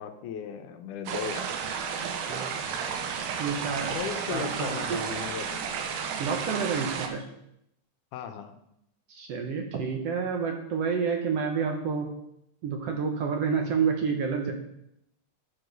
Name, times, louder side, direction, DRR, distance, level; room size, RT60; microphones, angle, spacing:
voice 1, 0.0-1.4 3.9-5.6 8.1-8.6, left 7 dB, 90° left, 7 dB, 2.3 m, -36 dB
sound 1, 1.1-7.1, right 6 dB, 85° right, 2.5 m, -32 dB
voice 2, 3.4-4.0 4.3-5.0 6.2-7.2 9.1-12.1 12.6-14.5, right 6 dB, 65° right, 3 dB, 1.7 m, -29 dB
10.0 x 4.7 x 6.5 m, 0.78 s
omnidirectional pair, 3.5 m